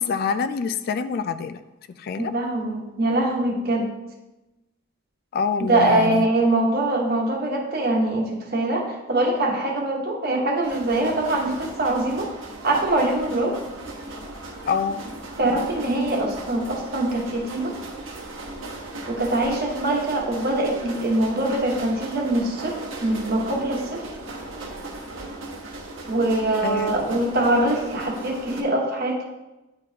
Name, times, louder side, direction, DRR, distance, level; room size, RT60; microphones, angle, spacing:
voice 1, 0.0-1.6 2.0-2.3 5.3-6.3 14.7-15.0 26.6-27.1, left 5 dB, 50° left, 11 dB, 0.3 m, -26 dB
voice 2, 2.2-3.9 5.7-12.3 12.6-13.6 15.4-17.8 19.1-24.1 26.1-29.2, right 1 dB, 55° right, 1 dB, 1.1 m, -23 dB
sound 1, 10.6-28.6, right 2 dB, 85° right, 1.1 m, -37 dB
9.7 x 4.0 x 2.8 m, 1.0 s
head